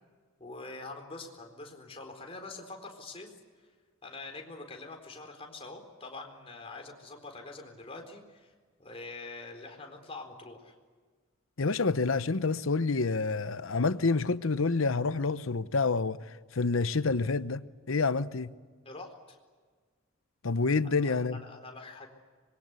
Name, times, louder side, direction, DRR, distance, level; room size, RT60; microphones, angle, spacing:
voice 1, 0.4-3.3 4.0-8.5 8.8-10.7 18.9-19.4 21.1-21.2 21.4-22.1, left 3 dB, 30° left, 4.2 m, -45 dB
voice 2, 11.6-17.6 17.9-18.5 20.4-21.4, left 4 dB, 80° left, 0.9 m, -28 dB
26.0 x 22.5 x 8.3 m
head